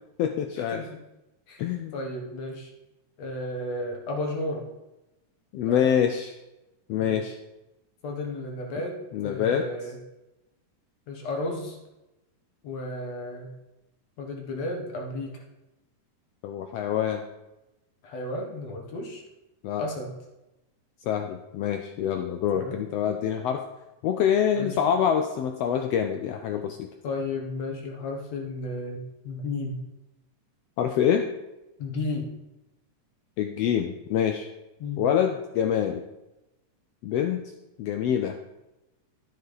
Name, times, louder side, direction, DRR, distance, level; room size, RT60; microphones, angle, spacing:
voice 1, 0.2-0.8 1.6-2.0 5.5-6.3 6.9-7.4 9.1-9.7 16.4-17.2 19.6-19.8 21.0-23.6 24.0-26.9 30.8-31.3 33.4-34.5 35.0-36.0 37.0-37.4 37.8-38.3, left 9 dB, 90° left, 5 dB, 1.4 m, -25 dB
voice 2, 1.9-2.7 3.2-4.7 5.7-5.9 7.0-7.3 8.0-9.0 9.2-10.0 11.1-11.8 12.6-13.6 14.2-15.4 18.0-19.2 19.8-20.2 22.5-22.8 24.6-24.8 27.0-29.9 31.8-32.3 34.8-35.0, left 2 dB, 60° left, 1 dB, 2.6 m, -33 dB
12.5 x 7.0 x 4.0 m, 0.97 s
omnidirectional pair, 3.6 m